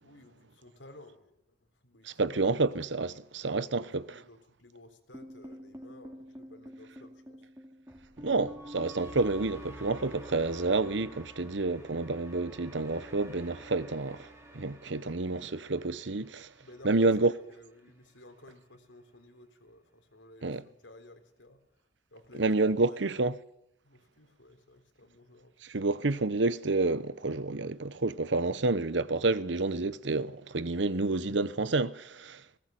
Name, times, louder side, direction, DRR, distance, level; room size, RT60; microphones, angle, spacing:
voice 1, 0.0-2.6 3.0-3.1 4.1-7.5 16.6-21.8 22.1-23.3 23.8-25.8, left 1 dB, 85° left, 3.9 m, -55 dB
voice 2, 2.1-4.0 8.2-14.3 14.5-16.5 16.8-17.3 20.4-20.6 22.3-23.3 25.7-32.4, right 3 dB, 75° right, 1.0 m, -29 dB
sound 1, 5.1-17.3, equal, 15° right, 3.1 m, -49 dB
19.5 x 18.5 x 9.2 m
head